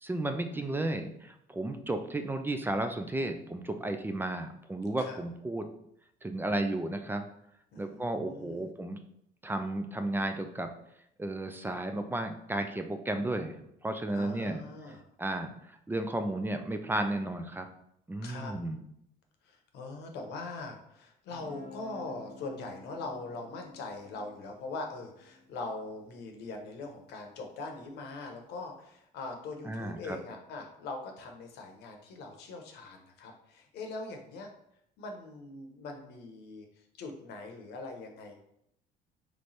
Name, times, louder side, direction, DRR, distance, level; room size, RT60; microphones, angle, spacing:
voice 1, 0.0-5.6 6.2-7.2 7.8-9.0 9.4-10.7 11.2-14.6 15.2-17.7 18.1-18.8 29.6-30.2, right 1 dB, 10° right, 7 dB, 0.3 m, -33 dB
voice 2, 0.5-1.1 5.0-5.2 7.7-8.7 14.1-15.0 18.2-18.5 19.4-34.5 35.0-38.3, left 3 dB, 80° left, 3 dB, 0.9 m, -42 dB
Guitar, 21.3-27.1, left 3 dB, 75° right, 1.3 m, -52 dB
3.2 x 3.1 x 4.0 m, 0.75 s
cardioid pair, 110°, 17 cm